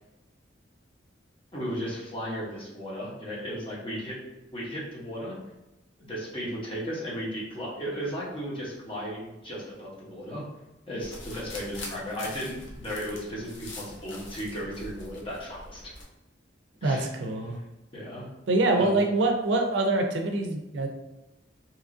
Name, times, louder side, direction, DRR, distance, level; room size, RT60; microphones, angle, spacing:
voice 1, 1.5-4.2 4.5-5.4 6.0-10.4 10.9-15.8 16.8-17.0 17.9-18.3 18.7-19.0, equal, 30° left, -5 dB, 0.9 m, -35 dB
sound 1, 11.0-16.1, left 2 dB, 90° left, 0.6 m, -43 dB
voice 2, 16.8-17.6 18.5-20.9, right 2 dB, 70° right, 4 dB, 0.4 m, -25 dB
2.9 x 2.4 x 2.5 m, 0.96 s
head